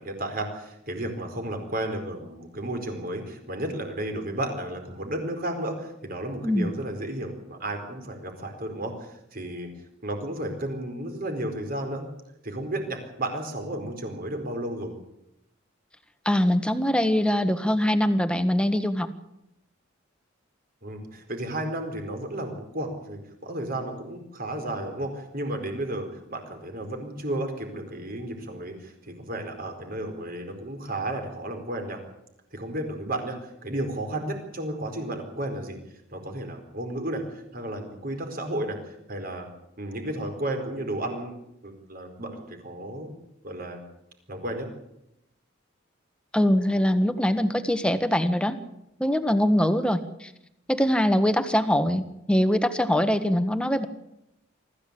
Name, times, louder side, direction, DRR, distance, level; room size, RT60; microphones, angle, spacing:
voice 1, 0.0-9.7 10.0-12.1 12.4-14.9 20.8-32.0 32.5-33.4 33.6-35.8 36.1-37.2 37.5-39.5 39.8-41.4 41.6-43.1 43.4-43.8 44.3-44.7, right 1 dB, 50° right, 5 dB, 4.6 m, -33 dB
voice 2, 16.2-19.1 46.3-48.6 49.0-50.3 50.7-53.9, equal, 5° left, 9 dB, 1.4 m, -23 dB
24.5 x 15.0 x 8.6 m, 0.84 s
head